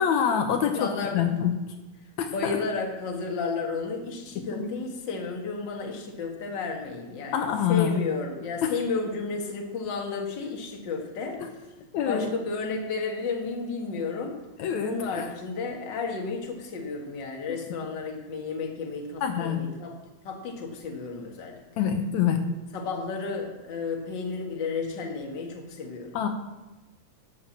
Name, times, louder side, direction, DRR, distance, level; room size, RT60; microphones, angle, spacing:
voice 1, 0.0-0.9 1.1-1.5 2.2-2.6 4.5-4.7 7.3-8.0 8.6-8.7 11.4-11.5 11.9-12.3 14.6-15.3 19.2-19.6 21.8-22.4 26.1-26.3, left 8 dB, 75° left, 6 dB, 2.2 m, -25 dB
voice 2, 0.6-1.2 2.3-11.4 12.1-14.4 14.8-20.0 20.2-21.6 22.7-26.1, left 4 dB, 40° left, 2 dB, 2.1 m, -32 dB
11.5 x 7.6 x 7.4 m, 1.1 s
omnidirectional pair, 3.4 m